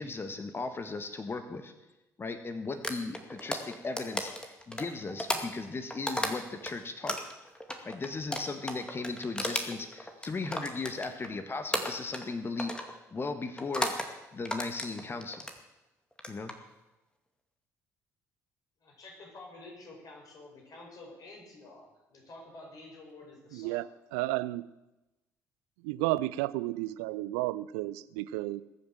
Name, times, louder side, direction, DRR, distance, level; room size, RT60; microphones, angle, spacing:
voice 1, 0.0-1.7 2.2-7.2 7.8-13.9 14.3-15.4 16.3-16.5, left 3 dB, 30° left, 9 dB, 1.5 m, -37 dB
sound 1, 2.8-6.7 7.1-11.3 11.7-12.3 12.6-12.9 13.6-14.1 14.4-15.6 16.1-16.5, left 1 dB, 10° left, 2.3 m, -34 dB
voice 2, 18.8-23.8, left 2 dB, 45° left, 0 dB, 5.7 m, -50 dB
voice 3, 23.5-24.7 25.8-28.6, right 18 dB, 70° right, 18 dB, 0.5 m, -32 dB
20.5 x 7.3 x 7.5 m, 0.99 s
figure-of-eight pair, 50°, 8 cm